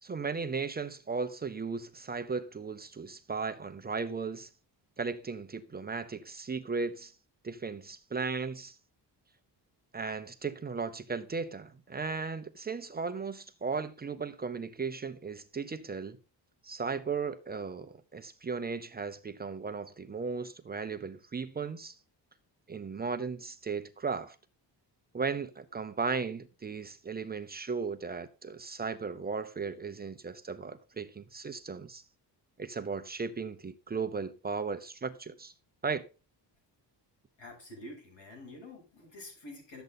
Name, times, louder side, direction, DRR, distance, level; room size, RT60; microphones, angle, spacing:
voice 1, 0.0-4.5 5.0-7.1 7.4-8.8 9.9-16.2 16.6-22.0 22.7-24.4 25.1-32.0 32.6-35.5 35.8-36.1, right 5 dB, 20° right, 0.7 m, -36 dB
voice 2, 37.4-39.8, left 1 dB, 85° left, 7.7 m, -47 dB
12.0 x 8.0 x 4.0 m
cardioid pair, 170°, 43 cm